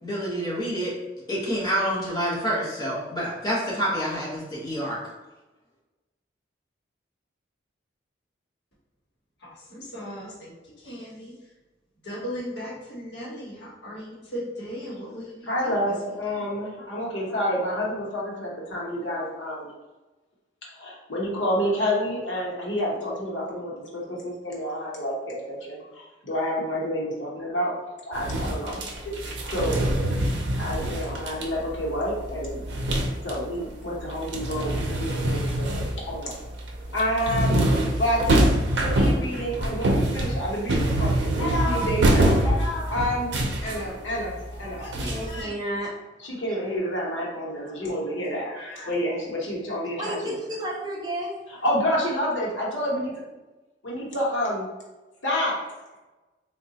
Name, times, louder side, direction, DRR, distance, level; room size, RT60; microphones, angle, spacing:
voice 1, 0.0-0.9 1.3-5.0, equal, 20° left, -7 dB, 1.0 m, -27 dB
voice 2, 9.4-11.3 12.0-15.7 16.3-16.4 29.7-30.3 44.8-45.5 48.4-48.9, equal, 65° left, -5 dB, 1.0 m, -38 dB
voice 3, 15.5-19.7 20.7-27.7 28.0-28.8 29.5-29.9 30.6-32.6 33.2-36.3 36.9-37.6 38.0-38.4 38.8-43.3 43.6-45.1 46.2-50.3 51.6-53.1 53.8-54.7 55.2-55.6, equal, 90° left, -3 dB, 0.9 m, -29 dB
sound 1, 28.1-33.6 33.9-45.4, right 1 dB, 70° right, 0.5 m, -25 dB
voice 4, 45.0-45.9 50.0-51.4, right 1 dB, 20° right, -2 dB, 0.4 m, -31 dB
3.7 x 2.2 x 2.7 m, 1.1 s
head